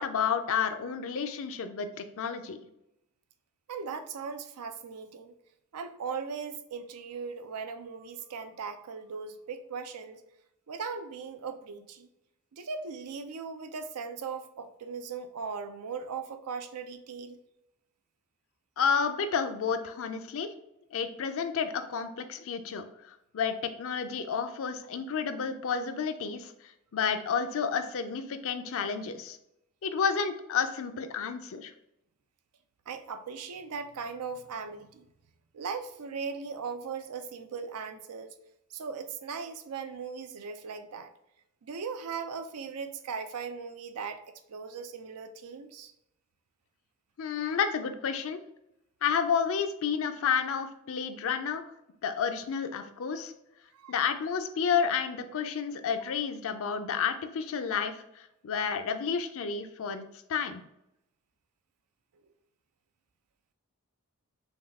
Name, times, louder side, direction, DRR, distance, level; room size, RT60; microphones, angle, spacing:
voice 1, 0.0-2.6 18.8-20.5 20.9-29.4 29.8-31.7 47.2-48.4 49.0-51.6 52.0-53.3 53.9-60.6, left 6 dB, 65° left, 9 dB, 0.4 m, -31 dB
voice 2, 3.7-5.3 5.7-10.2 10.7-12.1 12.5-17.4 32.9-35.1 35.5-38.3 38.7-41.1 41.6-44.2 44.5-45.9 53.7-54.0, right 5 dB, 85° right, 8 dB, 0.5 m, -38 dB
5.4 x 2.3 x 3.5 m, 0.82 s
head